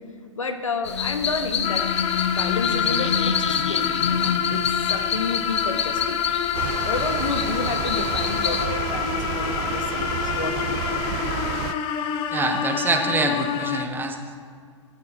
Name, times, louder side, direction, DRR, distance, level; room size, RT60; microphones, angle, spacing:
voice 1, 0.4-1.9 2.2-6.2 6.9-11.0, left 4 dB, 80° left, 7 dB, 1.2 m, -31 dB
sound 1, 0.8-8.7, left 7 dB, 65° left, 1.0 m, -27 dB
sound 2, 1.6-13.9, left 8 dB, 30° left, 0.8 m, -27 dB
sound 3, 6.5-11.7, right 14 dB, 30° right, 0.4 m, -31 dB
voice 2, 12.3-14.2, right 3 dB, 10° right, 5 dB, 1.1 m, -25 dB
14.5 x 9.6 x 4.9 m, 2.1 s
figure-of-eight pair, 110°, 16 cm